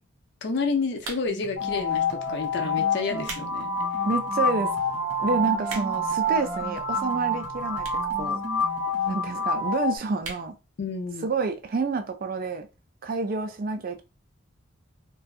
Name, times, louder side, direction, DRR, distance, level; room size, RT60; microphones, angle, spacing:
voice 1, 0.4-3.7 10.8-11.3, left 4 dB, 55° left, 0.5 m, -30 dB
sound 1, 1.0-1.5 2.3-2.5 3.0-3.5 3.9-4.0 4.7-4.8 5.0-5.1 5.3-6.1 6.9-7.0 7.8-8.1 8.4-8.5 8.7-8.8 9.0-9.1 9.5-9.7 10.2-10.5 10.9-11.0 11.1-11.2, right 4 dB, 90° right, 0.7 m, -38 dB
sound 2, 1.3-9.3, right 1 dB, 10° left, 0.9 m, -41 dB
sound 3, 1.6-10.0, left 1 dB, 85° left, 0.8 m, -27 dB
voice 2, 4.1-4.7 5.2-7.9 8.2-8.4 9.1-10.6 11.2-12.7 13.0-14.0, right 3 dB, 45° right, 0.3 m, -28 dB
2.6 x 2.2 x 2.3 m
head